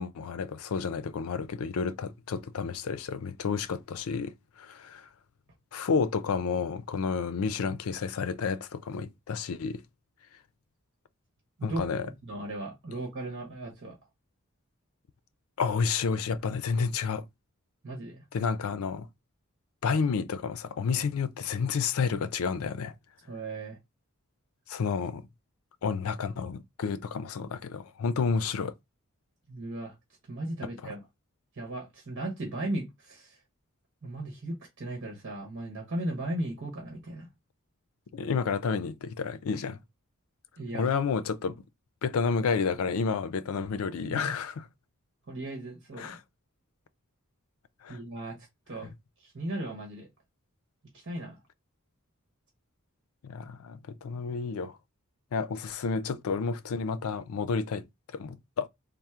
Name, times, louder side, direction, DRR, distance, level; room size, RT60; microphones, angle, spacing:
voice 1, 0.0-4.3 4.6-5.1 5.7-9.8 11.6-12.1 15.6-17.2 18.3-19.1 19.8-22.9 24.7-25.2 25.8-28.7 30.8-30.9 38.1-39.8 40.7-41.6 42.0-44.6 46.0-46.2 47.8-48.0 53.2-54.8 55.3-57.9 58.1-58.7, left 5 dB, 75° left, 0.4 m, -30 dB
voice 2, 12.2-14.0 17.8-18.2 23.3-23.8 29.5-29.9 30.3-31.0 31.5-33.4 34.0-37.3 40.6-40.9 44.0-44.3 45.3-46.2 47.9-48.4 48.7-48.9 49.2-50.1 50.9-51.3, right 1 dB, 55° right, 1.0 m, -36 dB
3.5 x 2.0 x 4.3 m
head